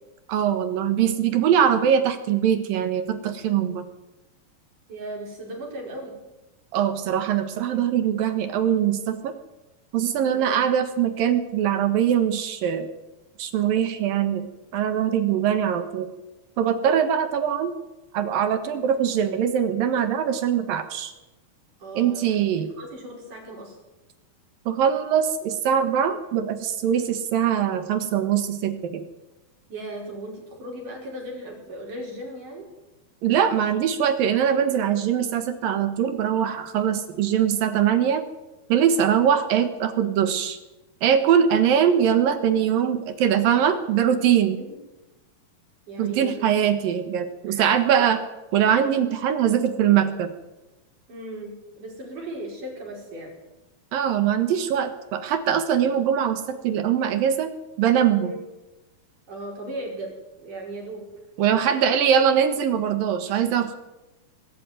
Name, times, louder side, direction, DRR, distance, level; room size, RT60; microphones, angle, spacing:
voice 1, 0.3-3.9 6.7-9.3 9.9-12.9 13.4-16.1 16.6-17.8 18.1-21.1 22.0-22.7 24.7-29.0 33.2-38.2 38.7-40.6 41.0-44.6 46.0-48.2 48.5-50.3 53.9-57.5 57.8-58.3 61.4-63.8, right 9 dB, 70° right, 9 dB, 3.0 m, -22 dB
voice 2, 4.9-6.1 10.3-10.6 18.6-18.8 21.8-22.2 22.8-23.8 26.9-27.0 29.7-32.7 44.5-44.7 45.9-47.0 47.4-48.2 51.1-53.3 58.2-58.4 59.3-60.1 60.4-61.1 61.5-62.0, right 1 dB, 55° right, -1 dB, 6.6 m, -37 dB
22.0 x 13.0 x 9.3 m, 1.0 s
omnidirectional pair, 4.4 m